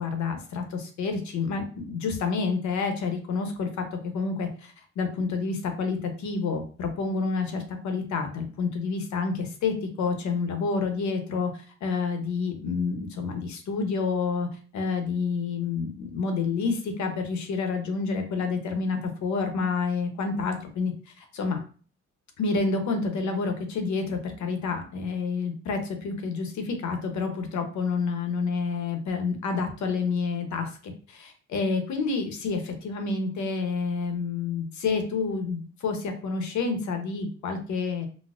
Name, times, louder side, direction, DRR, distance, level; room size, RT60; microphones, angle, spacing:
voice 1, 0.0-3.8 4.1-21.6 22.4-38.1, left 4 dB, 70° left, 6 dB, 0.8 m, -29 dB
4.1 x 2.0 x 2.4 m, 0.40 s
cardioid pair, 90°, 30 cm